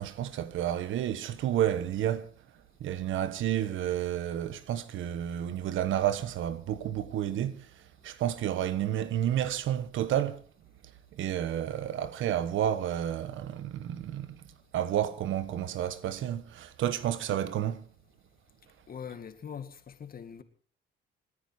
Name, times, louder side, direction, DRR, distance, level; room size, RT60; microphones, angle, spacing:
voice 1, 0.0-2.3 2.8-7.7 8.0-10.4 11.1-14.4 14.7-17.9, right 11 dB, 80° right, 1.3 m, -30 dB
voice 2, 18.9-20.4, left 7 dB, 50° left, 2.1 m, -42 dB
28.0 x 10.0 x 4.4 m
cardioid pair, 90°, 20 cm